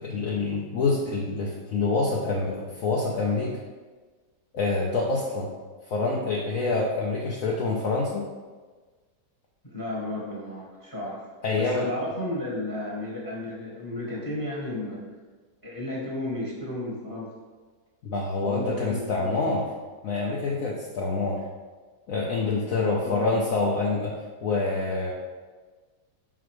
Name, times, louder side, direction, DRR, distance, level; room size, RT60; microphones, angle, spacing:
voice 1, 0.0-3.5 4.5-5.5 5.9-8.2 11.4-11.9 18.0-19.6 20.0-21.4 22.1-24.1 24.4-25.1, left 3 dB, 60° left, -2 dB, 1.1 m, -26 dB
voice 2, 9.6-11.3 11.5-15.0 15.6-17.3 18.4-19.6 22.7-23.3, left 1 dB, 10° left, -4 dB, 1.4 m, -33 dB
5.9 x 4.0 x 4.7 m, 1.4 s
omnidirectional pair, 1.8 m